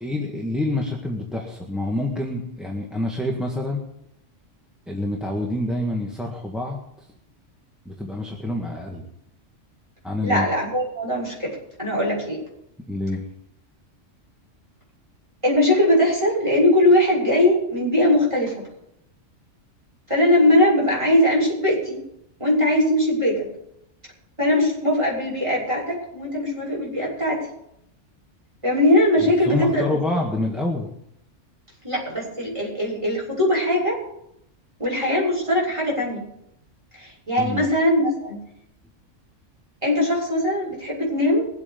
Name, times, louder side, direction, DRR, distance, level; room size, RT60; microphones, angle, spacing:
voice 1, 0.0-3.8 4.9-6.8 7.9-9.1 10.0-10.5 12.9-13.2 29.2-30.9 37.4-37.7, left 2 dB, ahead, -1 dB, 1.7 m, -27 dB
voice 2, 10.2-12.4 15.4-18.6 20.1-22.0 22.4-23.5 24.4-27.5 28.6-29.8 31.8-34.0 34.8-36.3 36.9-38.4 39.8-41.5, left 1 dB, 25° right, -4 dB, 7.1 m, -20 dB
22.0 x 8.4 x 5.4 m, 0.77 s
omnidirectional pair, 1.3 m